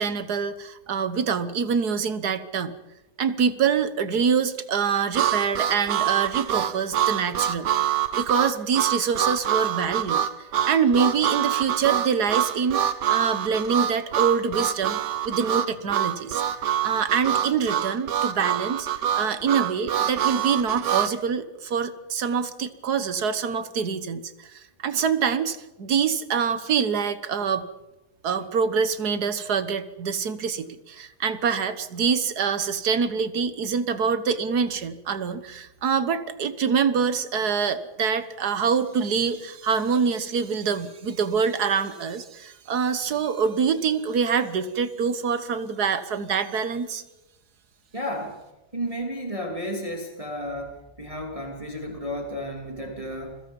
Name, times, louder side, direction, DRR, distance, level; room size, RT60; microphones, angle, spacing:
voice 1, 0.0-2.7 3.2-10.2 10.6-15.0 15.2-16.4 16.8-18.9 19.1-27.7 28.2-47.0, right 6 dB, 70° right, 12 dB, 1.8 m, -25 dB
Harmonica, 5.1-21.1, right 10 dB, 85° right, 1.6 m, -25 dB
voice 2, 47.9-48.4 48.7-53.4, equal, 20° right, 1 dB, 3.0 m, -32 dB
29.5 x 22.0 x 5.4 m, 1.0 s
omnidirectional pair, 1.8 m